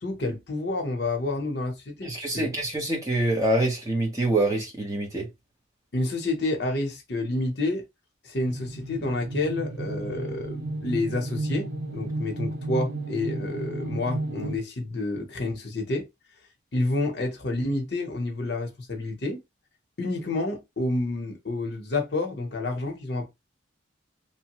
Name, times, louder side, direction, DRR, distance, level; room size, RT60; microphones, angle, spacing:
voice 1, 0.0-2.5 5.9-7.8 8.2-16.1 16.7-19.4 20.0-23.3, left 2 dB, 55° left, 0.8 m, -29 dB
voice 2, 2.0-5.3, right 2 dB, 15° right, 0.9 m, -25 dB
sound 1, 8.4-14.6, right 2 dB, 75° right, 0.8 m, -33 dB
2.9 x 2.1 x 2.9 m
head